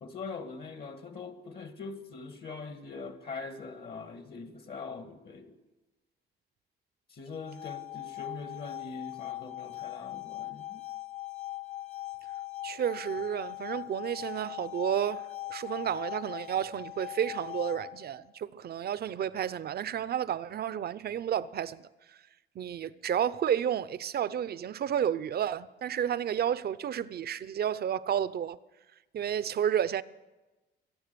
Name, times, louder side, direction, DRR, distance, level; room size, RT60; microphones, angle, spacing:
voice 1, 0.0-5.6 7.1-10.8, left 4 dB, 55° left, 1.6 m, -42 dB
sound 1, 7.3-18.2, left 16 dB, 35° left, 0.9 m, -41 dB
voice 2, 12.6-21.8 22.1-22.2 22.6-28.6 29.1-30.0, right 9 dB, 55° right, 0.6 m, -31 dB
23.5 x 8.7 x 6.8 m
cardioid pair, 90°, 20 cm